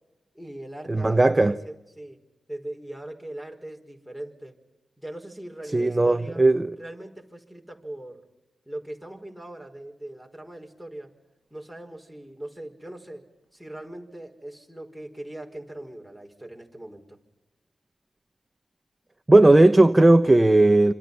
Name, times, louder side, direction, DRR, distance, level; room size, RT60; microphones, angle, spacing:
voice 1, 0.3-2.2 2.5-4.6 5.0-6.4 6.8-8.2 8.6-11.1 11.5-13.2 13.5-17.2, right 1 dB, ahead, 5.0 m, -40 dB
voice 2, 0.9-1.6 5.7-6.7 19.3-20.9, right 2 dB, 20° right, 0.9 m, -17 dB
26.5 x 26.5 x 5.6 m
cardioid pair, 85°, 0 cm